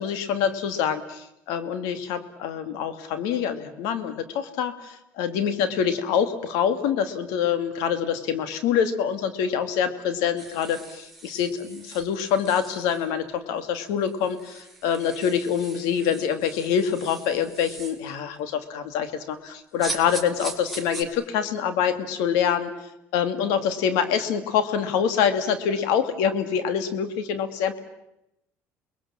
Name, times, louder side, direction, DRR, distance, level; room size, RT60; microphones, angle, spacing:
voice 1, 0.0-22.7 23.1-27.8, left 8 dB, 90° left, 11 dB, 2.2 m, -25 dB
sound 1, 10.4-13.1 13.7-13.8 14.1-18.0 19.8-21.0, right 2 dB, ahead, 4.1 m, -40 dB
28.5 x 21.5 x 7.5 m, 0.86 s
cardioid pair, 115°, 6 cm